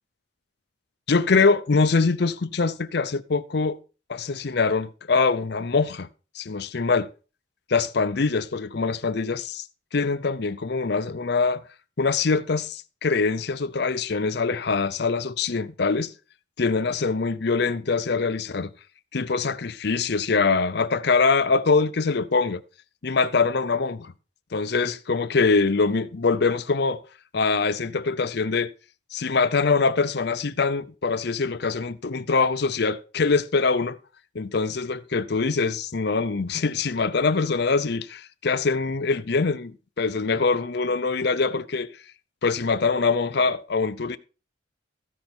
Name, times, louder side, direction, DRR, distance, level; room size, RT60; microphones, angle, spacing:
voice 1, 1.1-3.8 4.1-6.1 6.3-7.1 7.7-9.7 9.9-11.6 12.0-16.1 16.6-18.7 19.1-22.6 23.0-24.1 24.5-27.0 27.3-28.7 29.1-34.0 34.3-41.9 42.4-44.2, left 4 dB, 55° left, 0.6 m, -23 dB
15.0 x 5.3 x 4.4 m
head